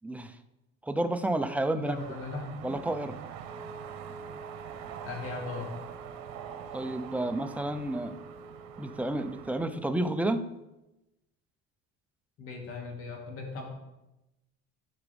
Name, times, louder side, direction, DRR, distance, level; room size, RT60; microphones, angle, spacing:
voice 1, 0.0-0.3 0.8-2.0 2.6-3.2 6.7-8.1 8.8-10.5, right 1 dB, 5° right, 8 dB, 0.5 m, -30 dB
voice 2, 1.8-2.8 5.0-5.7 12.4-13.7, left 3 dB, 50° left, 0 dB, 2.5 m, -38 dB
sound 1, 1.9-9.7, right 9 dB, 75° right, 1.1 m, -44 dB
Wind instrument woodwind instrument, 3.4-10.5, right 3 dB, 35° right, 1.3 m, -49 dB
13.5 x 5.8 x 3.5 m, 0.95 s
cardioid pair, 125°, 29 cm